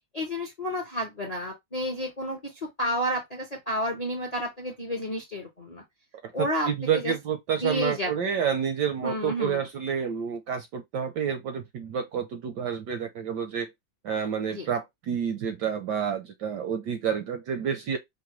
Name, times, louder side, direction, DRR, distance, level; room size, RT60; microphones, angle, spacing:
voice 1, 0.1-5.8 6.3-7.1 7.6-8.3 9.0-9.7 14.5-14.7, equal, 45° left, 0.4 m, -31 dB
voice 2, 6.2-13.7 14.0-18.0, right 7 dB, 75° right, 1.0 m, -29 dB
5.3 x 2.2 x 2.9 m
omnidirectional pair, 2.2 m